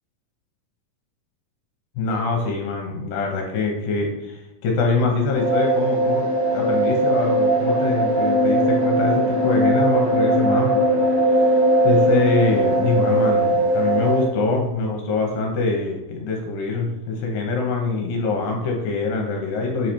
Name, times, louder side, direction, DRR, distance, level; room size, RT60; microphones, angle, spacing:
voice 1, 2.0-6.3 6.5-10.8 11.3-11.4 11.8-19.9, left 3 dB, 75° left, 1 dB, 2.3 m, -24 dB
sound 1, 5.3-14.2, right 1 dB, 30° right, 0.9 m, -19 dB
7.7 x 3.2 x 4.3 m, 0.95 s
omnidirectional pair, 4.1 m